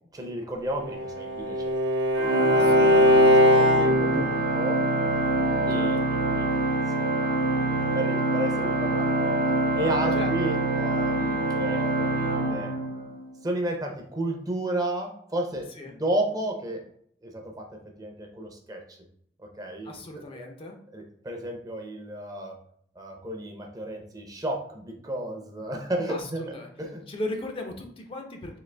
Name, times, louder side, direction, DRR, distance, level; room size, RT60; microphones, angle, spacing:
voice 1, 0.1-1.8 2.6-3.0 3.4-4.8 5.7-6.5 7.0-12.7 13.4-16.8 17.2-17.7 18.0-19.0 19.4-20.5 20.9-22.5 23.0-27.0, right 1 dB, 20° right, 2 dB, 0.6 m, -33 dB
Bowed string instrument, 0.7-4.3, left 1 dB, 75° right, 0.7 m, -20 dB
Organ, 2.1-13.3, right 2 dB, 55° right, 1.1 m, -25 dB
voice 2, 2.5-3.4 5.7-6.1 10.1-10.3 15.8-16.0 19.8-20.8 26.1-26.7 27.1-28.6, left 1 dB, 30° left, 3 dB, 0.4 m, -37 dB
3.8 x 2.8 x 3.3 m, 0.66 s
head